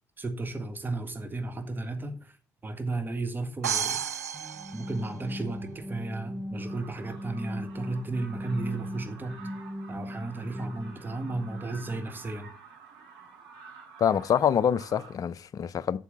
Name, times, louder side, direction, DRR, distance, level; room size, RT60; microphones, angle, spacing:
voice 1, 0.2-2.3 2.6-4.0 4.7-9.5 9.9-12.5, right 2 dB, 25° right, 1.8 m, -34 dB
sound 1, 3.6-5.6, right 8 dB, 85° right, 0.4 m, -32 dB
sound 2, 4.3-12.1, left 1 dB, 5° right, 0.9 m, -39 dB
sound 3, 6.6-15.2, right 5 dB, 60° right, 4.7 m, -50 dB
voice 2, 14.0-16.0, left 8 dB, 45° left, 0.6 m, -25 dB
8.3 x 6.9 x 6.6 m
figure-of-eight pair, 45°, 8 cm